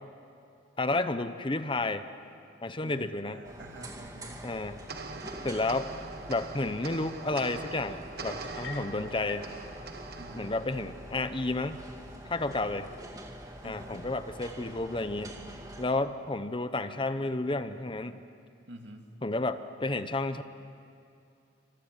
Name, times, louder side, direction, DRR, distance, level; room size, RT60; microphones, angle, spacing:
voice 1, 0.8-2.1 2.6-3.4 4.4-4.9 5.4-5.9 6.3-9.5 10.3-11.8 12.3-12.9 13.6-15.4 15.8-18.2 19.2-20.4, left 2 dB, 25° left, 11 dB, 0.8 m, -31 dB
voice 2, 2.8-4.5 10.2-10.5 13.6-14.1 18.7-19.1, right 1 dB, 75° right, 4 dB, 2.4 m, -48 dB
sound 1, 3.4-15.8, right 1 dB, 20° right, 2.4 m, -45 dB
sound 2, 4.9-11.5, right 4 dB, 55° right, 1.5 m, -43 dB
sound 3, 8.4-9.5, left 6 dB, 80° left, 1.4 m, -45 dB
28.5 x 25.5 x 7.6 m, 2.6 s
head